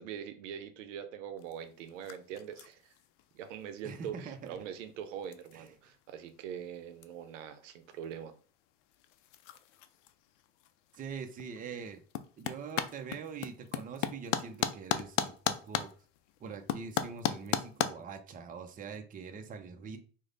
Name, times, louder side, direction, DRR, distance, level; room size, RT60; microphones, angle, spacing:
voice 1, 0.0-2.9 3.3-8.3, right 8 dB, 85° right, 9 dB, 0.6 m, -43 dB
sound 1, 1.4-17.9, left 11 dB, 80° left, 0.5 m, -39 dB
voice 2, 3.8-4.6 5.5-5.7 10.9-12.0 12.4-15.9 16.4-20.0, right 6 dB, 25° right, 6 dB, 0.5 m, -43 dB
3.2 x 2.1 x 3.8 m, 0.40 s
supercardioid pair, 100°, 36 cm